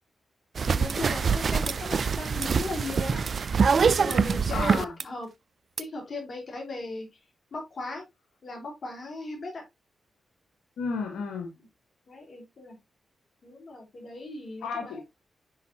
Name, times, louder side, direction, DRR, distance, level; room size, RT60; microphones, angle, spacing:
sound 1, 0.5-5.0 5.8-5.9, right 5 dB, 60° right, 0.4 m, -24 dB
voice 1, 0.6-3.6 3.9-5.3 5.8-7.2 7.5-8.0 8.4-9.6 11.6-11.7 12.1-12.8 13.4-15.0, left 2 dB, 60° left, 4.1 m, -38 dB
voice 2, 4.5-5.0 10.8-11.5 14.6-15.0, left 5 dB, 90° left, 1.7 m, -32 dB
9.7 x 5.5 x 2.8 m
supercardioid pair, 50°, 0 cm